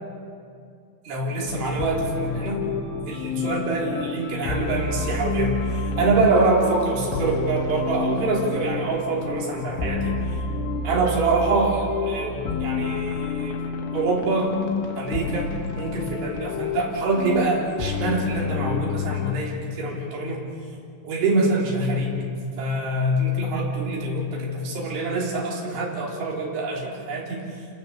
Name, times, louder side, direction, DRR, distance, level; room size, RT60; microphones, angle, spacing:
voice 1, 1.1-2.6 3.1-10.2 10.8-13.6 13.9-14.6 15.0-15.5 15.8-20.4 21.0-22.2 22.6-27.4, right 2 dB, 75° right, -3 dB, 6.0 m, -25 dB
sound 1, 1.5-19.3, left 4 dB, 80° left, 3.8 m, -29 dB
28.5 x 19.0 x 6.9 m, 2.3 s
omnidirectional pair, 5.5 m